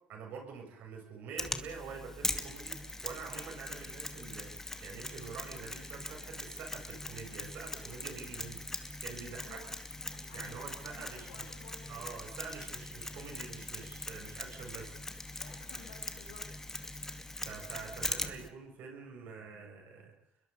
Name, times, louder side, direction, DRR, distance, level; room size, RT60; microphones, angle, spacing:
voice 1, 0.1-9.6 10.3-11.5 11.9-15.0 17.4-20.1, right 5 dB, 60° right, 3 dB, 7.3 m, -46 dB
Mechanisms, 1.4-18.5, left 2 dB, 10° left, 2.4 m, -41 dB
voice 2, 10.0-10.6 10.9-11.9 15.4-16.5, left 4 dB, 80° left, -4 dB, 6.7 m, -54 dB
29.5 x 22.0 x 5.4 m, 0.68 s
hypercardioid pair, 70°, 4 cm